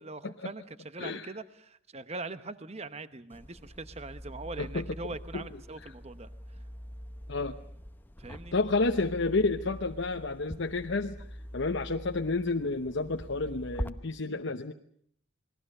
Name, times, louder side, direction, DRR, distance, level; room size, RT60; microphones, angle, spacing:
voice 1, 0.0-6.6 8.2-8.5, right 3 dB, 30° right, 12 dB, 0.9 m, -42 dB
sound 1, 3.3-13.9, equal, 10° left, 0.9 m, -44 dB
voice 2, 8.5-14.7, left 3 dB, 60° left, 5 dB, 0.9 m, -30 dB
28.0 x 20.0 x 6.6 m, 0.67 s
head